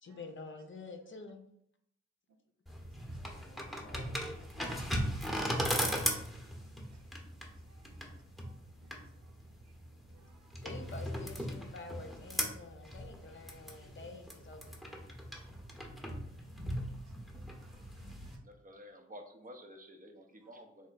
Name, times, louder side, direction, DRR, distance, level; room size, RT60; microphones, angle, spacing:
voice 1, 0.0-1.4 3.4-4.2 10.6-14.8, left 3 dB, 40° left, 0.6 m, -48 dB
sound 1, 2.7-18.4, equal, ahead, 0.9 m, -38 dB
voice 2, 2.8-4.7 6.2-8.1 8.4-9.3 9.6-9.8 10.1-10.6 16.4-18.4 20.3-20.5, right 4 dB, 65° right, 0.6 m, -69 dB
voice 3, 18.4-20.9, equal, 30° right, 0.7 m, -51 dB
3.5 x 2.1 x 3.9 m
supercardioid pair, 55°, 30 cm